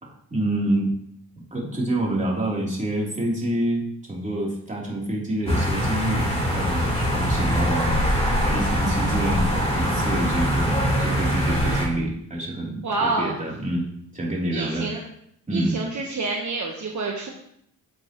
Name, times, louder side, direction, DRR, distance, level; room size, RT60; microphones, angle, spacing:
voice 1, 0.0-0.9 1.5-13.9 14.1-14.9 15.5-15.8, right 1 dB, 20° right, -4 dB, 3.5 m, -27 dB
sound 1, 5.5-11.8, equal, 15° left, 3.8 m, -23 dB
voice 2, 12.8-13.4 14.5-15.0 15.5-17.3, right 3 dB, 55° right, 0 dB, 1.4 m, -27 dB
8.2 x 7.9 x 3.1 m, 0.70 s
cardioid pair, 75°, 34 cm